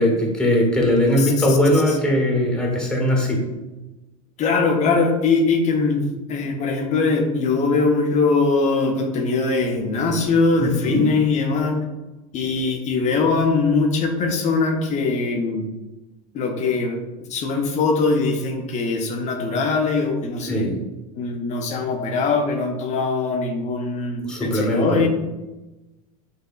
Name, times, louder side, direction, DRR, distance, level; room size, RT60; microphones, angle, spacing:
voice 1, 0.0-3.4 10.1-10.2 10.6-11.1 20.5-20.8 24.2-25.1, left 1 dB, 5° left, -1 dB, 1.2 m, -20 dB
voice 2, 1.2-1.6 1.9-2.0 4.4-6.0 6.3-11.8 12.3-15.7 16.3-17.0 17.3-20.7 21.2-25.1, left 4 dB, 40° left, 3 dB, 0.8 m, -21 dB
6.6 x 2.7 x 2.4 m, 1.1 s
hypercardioid pair, 95°, 19 cm